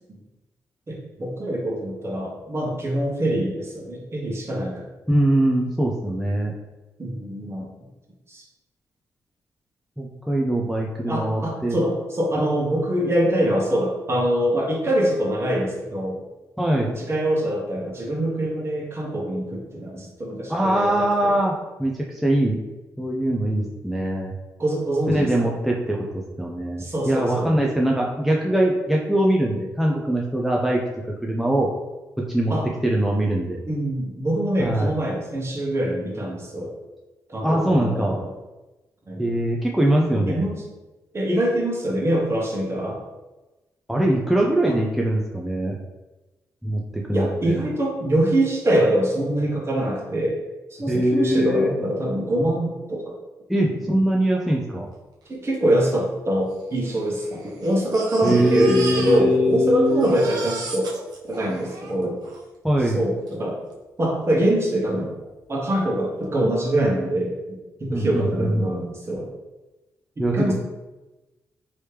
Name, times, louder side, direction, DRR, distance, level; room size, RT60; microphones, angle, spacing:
voice 1, 0.9-4.8 7.0-7.7 8.3-8.4 11.1-16.2 16.8-21.4 24.6-25.6 26.8-27.6 32.5-32.7 33.7-36.7 37.3-38.3 39.1-39.2 39.9-40.6 41.1-43.0 44.6-44.8 47.1-50.4 50.7-53.2 53.7-54.0 55.3-60.9 61.2-62.2 62.8-63.6 64.0-65.2 65.5-69.3 70.2-70.5, right 1 dB, 40° right, -2 dB, 1.2 m, -24 dB
voice 2, 5.1-6.5 10.0-11.8 16.6-16.9 20.5-22.6 23.0-24.3 25.1-31.7 32.3-32.5 32.8-33.6 34.6-34.9 37.4-38.2 39.2-40.4 43.9-45.7 46.6-47.6 50.9-51.7 53.5-54.9 58.2-60.2 62.6-63.0 67.9-68.7 70.2-70.5, right 1 dB, ahead, -2 dB, 0.5 m, -22 dB
Crying sobbing, 55.5-55.6 55.8-55.9 56.7-59.6 59.9-62.4 63.3-63.4 63.7-63.8, right 3 dB, 70° right, 0.8 m, -36 dB
3.1 x 2.9 x 3.3 m, 1.1 s
cardioid pair, 60°, 7 cm